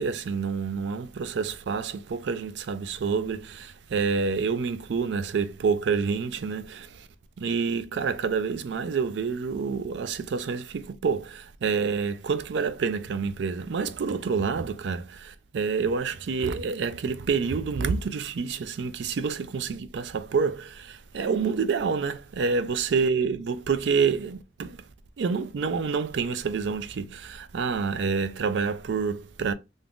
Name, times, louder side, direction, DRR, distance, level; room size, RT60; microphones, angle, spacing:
voice 1, 0.0-7.1 7.4-24.8 25.2-29.5, right 5 dB, 70° right, 0.4 m, -28 dB
2.6 x 2.4 x 3.5 m
head